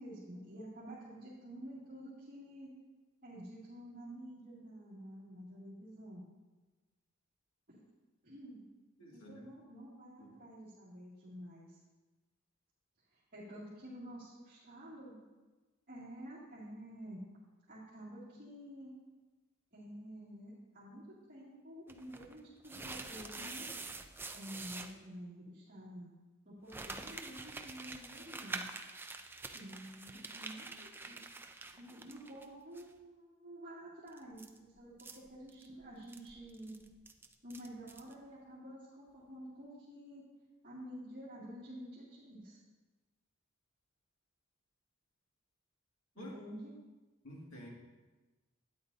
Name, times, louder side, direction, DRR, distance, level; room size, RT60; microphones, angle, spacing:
voice 1, 0.0-2.7 3.2-6.2 7.7-7.8 8.2-8.6 9.1-11.8 13.1-15.2 15.9-17.2 17.7-18.9 19.7-23.7 24.3-26.1 26.4-28.6 29.5-31.2 31.7-36.7 37.4-40.2 40.6-42.6 46.1-46.7, equal, 40° right, -9 dB, 2.3 m, -50 dB
voice 2, 9.0-9.5 10.2-10.3 46.2-46.3 47.2-47.7, equal, 80° left, -3 dB, 2.0 m, -50 dB
sound 1, 21.9-24.9 26.7-32.5 32.7-32.8 34.1-38.1, right 3 dB, 10° right, 0.4 m, -46 dB
12.0 x 9.5 x 2.7 m, 1.2 s
head